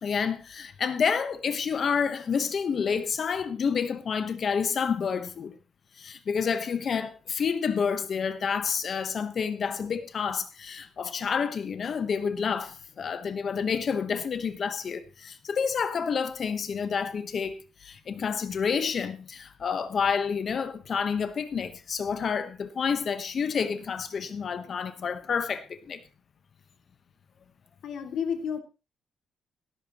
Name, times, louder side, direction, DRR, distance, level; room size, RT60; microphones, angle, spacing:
voice 1, 0.0-5.6 6.0-26.0, left 6 dB, 40° left, 1.1 m, -29 dB
voice 2, 24.6-25.1 27.8-28.6, left 7 dB, 65° left, 2.3 m, -33 dB
18.0 x 13.0 x 3.0 m
cardioid pair, 155°, 0 cm